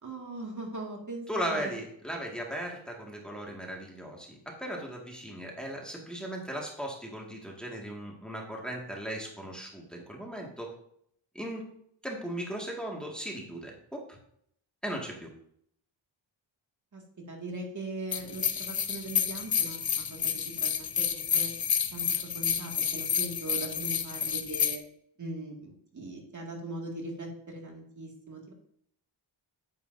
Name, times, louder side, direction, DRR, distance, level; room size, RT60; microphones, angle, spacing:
voice 1, 0.0-1.7 16.9-21.5 21.9-24.8 25.2-28.5, right 2 dB, 40° right, 0 dB, 2.1 m, -40 dB
voice 2, 1.3-10.7 11.3-11.7 12.0-14.0 14.8-15.3, equal, ahead, -2 dB, 1.9 m, -37 dB
sound 1, 18.1-24.8, left 7 dB, 50° left, 0.9 m, -30 dB
9.4 x 8.7 x 2.7 m, 0.68 s
wide cardioid pair, 105°, 48 cm